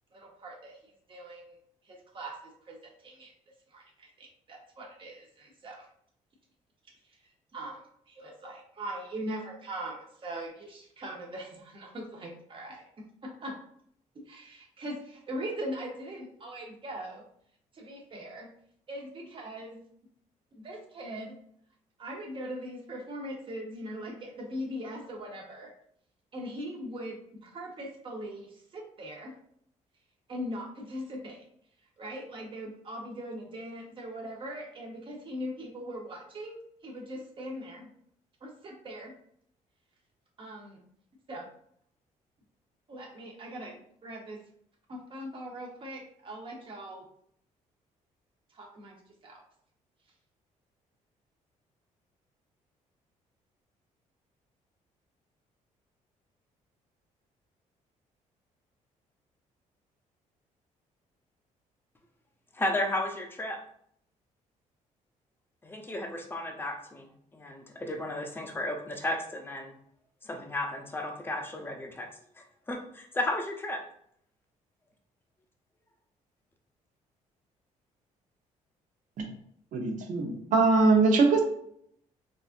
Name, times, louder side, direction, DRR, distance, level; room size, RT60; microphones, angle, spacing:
voice 1, 0.1-0.8 1.1-1.6 1.9-2.3 2.7-3.3 3.7-5.8 7.5-7.8 8.1-12.8 13.2-13.5 14.3-17.2 17.7-18.5 18.9-19.8 20.6-21.3 22.0-25.7 26.3-29.3 30.3-31.4 32.0-37.9 38.4-39.1 40.4-40.8 41.3-41.5 42.9-44.4 44.9-47.0 48.5-49.0 49.2-49.4, equal, 40° right, -1 dB, 1.0 m, -40 dB
voice 2, 62.5-63.6 65.6-69.7 70.2-72.1 72.4-73.8, left 1 dB, 15° left, 3 dB, 0.6 m, -34 dB
voice 3, 79.7-81.4, right 3 dB, 70° right, 2 dB, 0.8 m, -22 dB
4.1 x 2.5 x 2.5 m, 0.67 s
cardioid pair, 110°, 14 cm